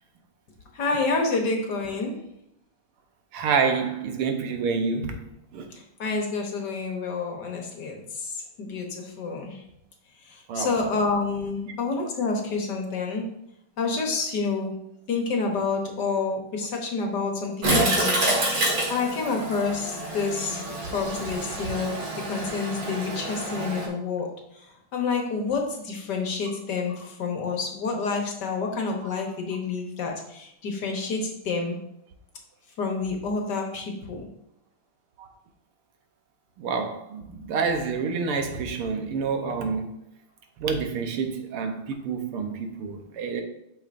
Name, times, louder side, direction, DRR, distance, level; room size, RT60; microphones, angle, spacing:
voice 1, 0.7-2.2 5.7-9.6 10.2-13.3 13.8-14.7 15.1-21.9 22.3-31.8 32.8-34.3, left 4 dB, 60° left, 2 dB, 1.4 m, -29 dB
voice 2, 3.3-5.2 5.5-5.7 10.5-10.7 35.2-35.3 36.6-39.9 40.6-43.4, right 5 dB, 85° right, 5 dB, 1.8 m, -28 dB
Toilet flush, 17.6-23.9, right 1 dB, 45° right, 2.0 m, -27 dB
8.5 x 6.1 x 2.5 m, 0.78 s
omnidirectional pair, 2.4 m